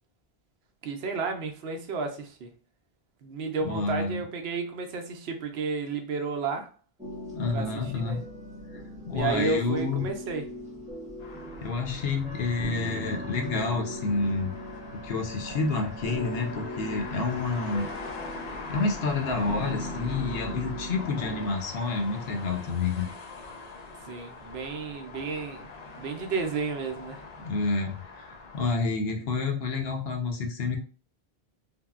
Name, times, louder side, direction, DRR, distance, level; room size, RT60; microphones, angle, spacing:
voice 1, 0.8-2.5 3.2-6.7 7.5-8.2 9.1-10.5 24.0-25.7 26.0-27.2, right 4 dB, 80° right, 0.8 m, -32 dB
voice 2, 3.6-4.2 7.3-8.2 9.1-10.1 11.6-14.5 15.0-17.9 18.7-23.1 27.4-28.0 28.3-30.8, left 3 dB, 70° left, 0.9 m, -29 dB
sound 1, 7.0-21.6, equal, 10° right, 0.4 m, -39 dB
sound 2, 11.2-28.7, left 3 dB, 50° left, 0.5 m, -42 dB
Wind instrument woodwind instrument, 12.2-16.7, right 4 dB, 50° right, 0.8 m, -47 dB
3.5 x 2.0 x 2.3 m
omnidirectional pair, 1.0 m